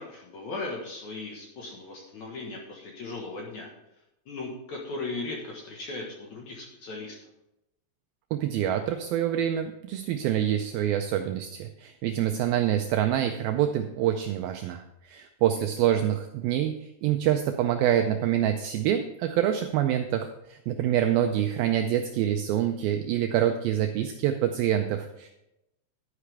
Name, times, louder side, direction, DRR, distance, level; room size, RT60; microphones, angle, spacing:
voice 1, 0.0-3.7 4.3-7.2, left 3 dB, 60° left, -1 dB, 2.1 m, -37 dB
voice 2, 8.3-25.3, right 11 dB, 85° right, 6 dB, 2.1 m, -26 dB
11.0 x 9.8 x 3.4 m, 0.89 s
omnidirectional pair, 4.8 m